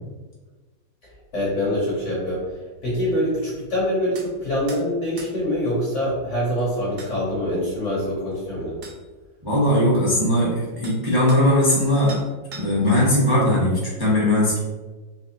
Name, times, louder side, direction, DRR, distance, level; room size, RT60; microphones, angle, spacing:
voice 1, 1.3-2.4 2.8-8.8, equal, 50° left, -5 dB, 1.1 m, -24 dB
sound 1, 4.2-4.3 4.7-4.8 5.2-5.3 6.6-6.7 7.0-7.1 8.3-8.4 8.8-9.0 10.4-10.5 10.8-11.0 11.3-11.8 12.1-12.9, right 4 dB, 65° right, 0.8 m, -40 dB
voice 2, 9.4-12.3 12.5-14.6, left 1 dB, 15° right, -7 dB, 0.8 m, -19 dB
3.5 x 3.0 x 2.8 m, 1.3 s
omnidirectional pair, 2.0 m